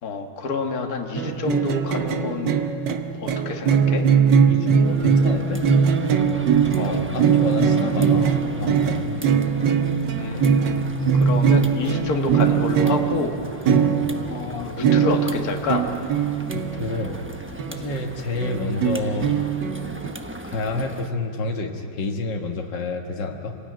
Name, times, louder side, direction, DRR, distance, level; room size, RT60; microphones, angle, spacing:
voice 1, 0.0-2.5 3.2-4.1 6.7-7.0 10.2-13.3 14.3-15.9, left 4 dB, 55° left, 2 dB, 2.0 m, -28 dB
sound 1, 1.1-18.1 18.4-20.1, right 7 dB, 75° right, 1.7 m, -21 dB
voice 2, 4.5-5.6 6.8-9.2 11.2-12.0 13.7-14.1 16.5-17.2 17.7-19.4 20.4-23.6, left 3 dB, 75° left, 2 dB, 2.2 m, -29 dB
sound 2, 4.8-21.1, right 1 dB, 10° right, 0.6 m, -38 dB
26.5 x 18.5 x 9.3 m, 2.7 s
omnidirectional pair, 2.0 m